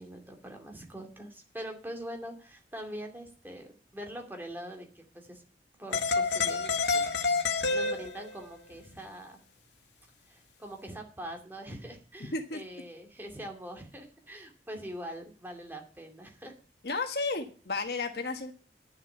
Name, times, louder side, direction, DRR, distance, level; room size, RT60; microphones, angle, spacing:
voice 1, 0.0-5.4 5.8-7.2 7.5-9.4 10.3-16.5, equal, 10° right, 3 dB, 2.5 m, -43 dB
sound 1, 5.9-8.4, left 4 dB, 90° left, 1.6 m, -28 dB
voice 2, 16.8-18.5, left 3 dB, 65° left, 5 dB, 1.5 m, -32 dB
11.0 x 7.4 x 9.2 m, 0.40 s
head